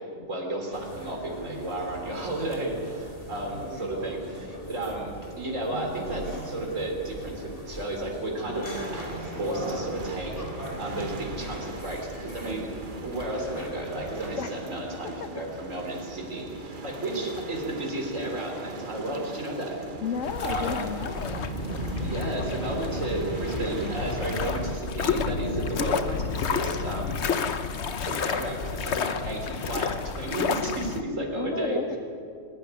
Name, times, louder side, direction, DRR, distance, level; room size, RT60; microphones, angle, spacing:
voice 1, 0.1-8.7 8.9-12.7 13.0-19.8 20.4-20.9 22.0-27.6 28.0-31.8, right 1 dB, 80° right, 1 dB, 4.1 m, -33 dB
sound 1, 0.7-14.4, left 1 dB, 45° left, 3.9 m, -39 dB
sound 2, 8.7-24.8, right 3 dB, 40° right, 1.3 m, -39 dB
voice 2, 20.0-21.4 31.3-32.0, left 6 dB, 80° left, 8 dB, 1.3 m, -32 dB
sound 3, 20.2-31.0, left 6 dB, 60° left, 1.2 m, -30 dB
27.5 x 12.0 x 9.8 m, 2.5 s
omnidirectional pair, 1.3 m